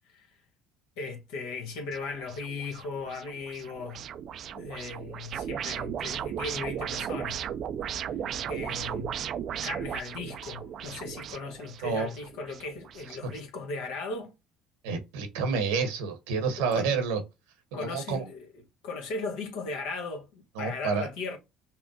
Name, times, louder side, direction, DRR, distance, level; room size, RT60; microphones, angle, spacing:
voice 1, 1.0-4.0 4.5-7.5 7.9-8.0 8.4-9.1 9.6-14.3 16.6-16.9 17.7-18.5 18.8-21.4, left 3 dB, 75° left, 1.2 m, -37 dB
sound 1, 1.9-13.4, right 9 dB, 55° right, 0.4 m, -36 dB
voice 2, 14.8-17.2 17.8-18.2 20.5-21.1, right 5 dB, 80° right, 1.0 m, -29 dB
5.8 x 2.1 x 2.7 m
hypercardioid pair, 70°, 0 cm